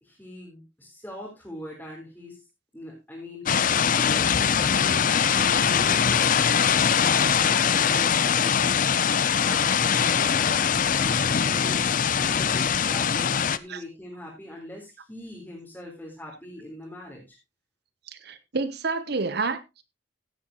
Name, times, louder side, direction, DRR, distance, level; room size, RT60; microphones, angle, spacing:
voice 1, 0.0-2.4 2.7-17.4, left 1 dB, 10° left, 3.7 m, -42 dB
sound 1, 3.5-13.6, left 7 dB, 40° left, 0.5 m, -22 dB
voice 2, 18.1-19.8, right 4 dB, 55° right, 0.9 m, -29 dB
16.0 x 8.7 x 2.9 m
head